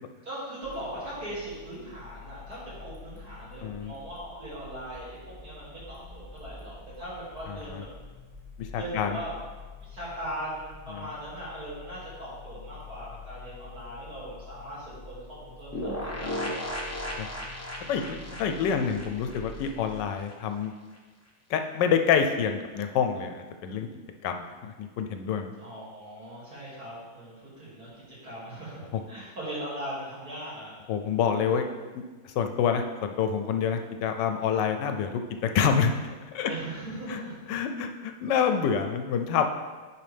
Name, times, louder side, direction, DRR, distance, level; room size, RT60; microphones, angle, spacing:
voice 1, 0.2-7.9 8.7-9.3 9.8-16.5 25.6-28.8 29.1-30.8 36.4-37.4, right 1 dB, 50° right, -8 dB, 3.1 m, -39 dB
sound 1, 0.6-20.1, left 4 dB, 10° right, 1.4 m, -47 dB
voice 2, 3.6-3.9 7.5-7.8 8.6-9.2 10.9-11.1 17.2-17.3 17.9-20.7 21.5-23.9 24.2-25.5 28.9-29.0 30.9-31.6 32.2-35.9 36.3-36.5 37.1-37.2 37.5-39.5, left 7 dB, 70° left, 6 dB, 1.2 m, -27 dB
sound 2, 15.7-20.3 20.6-20.7 20.9-21.0, left 1 dB, 20° left, 0.4 m, -36 dB
9.5 x 5.4 x 3.4 m, 1.3 s
omnidirectional pair, 2.1 m